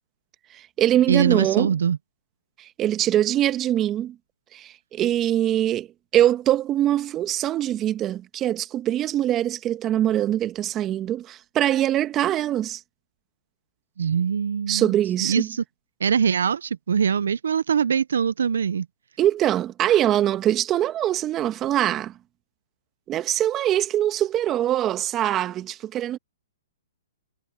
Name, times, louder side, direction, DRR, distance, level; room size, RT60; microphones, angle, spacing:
voice 1, 0.5-1.7 2.6-4.1 4.5-5.9 6.1-12.8 14.7-15.5 19.2-22.1 23.1-26.2, right 12 dB, 25° right, 1.5 m, -23 dB
voice 2, 1.1-2.0 14.0-14.9 15.2-15.6 16.0-18.9, right 7 dB, 80° right, 0.4 m, -22 dB
hypercardioid pair, 135°, 0 cm